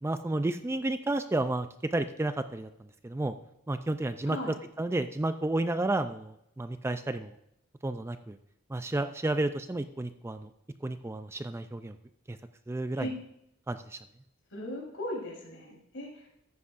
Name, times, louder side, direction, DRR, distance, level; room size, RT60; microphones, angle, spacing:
voice 1, 0.0-2.7 3.0-3.3 3.7-7.4 7.8-8.4 8.7-10.5 10.8-11.9 12.3-12.4 12.7-13.1 13.7-14.0, right 2 dB, 10° right, 10 dB, 0.3 m, -31 dB
voice 2, 14.5-16.3, left 1 dB, 65° left, -2 dB, 3.9 m, -38 dB
14.0 x 9.6 x 2.5 m, 0.81 s
head